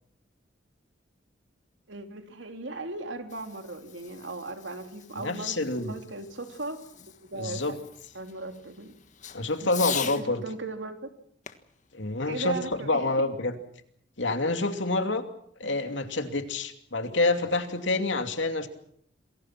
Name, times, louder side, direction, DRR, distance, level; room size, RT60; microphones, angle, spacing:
voice 1, 1.9-5.6 5.9-7.8 8.1-8.9 9.6-9.7 10.1-11.0 12.2-13.3 15.6-15.8, right 2 dB, 80° right, 6 dB, 3.0 m, -38 dB
Fireworks, 3.0-10.3 11.4-13.1, left 9 dB, 45° left, 1.6 m, -42 dB
voice 2, 5.1-5.9 7.3-7.7 9.3-10.4 11.9-13.5 14.2-15.2 15.6-18.7, left 2 dB, 80° left, 7 dB, 2.8 m, -27 dB
28.0 x 22.0 x 6.0 m, 0.69 s
head